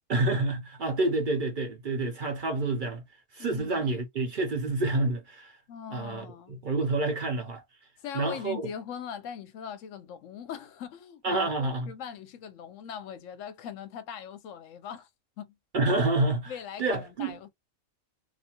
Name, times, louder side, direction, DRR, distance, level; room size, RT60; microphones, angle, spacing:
voice 1, 0.1-3.0 3.3-5.6 5.9-7.6 8.1-8.7 11.2-11.9 15.7-16.5 16.8-17.4, right 2 dB, 50° right, 0.7 m, -28 dB
voice 2, 3.4-3.9 5.7-6.6 8.0-15.1 15.4-15.5 16.5-17.5, left 8 dB, 70° left, 0.9 m, -41 dB
2.7 x 2.2 x 2.8 m
omnidirectional pair, 1.4 m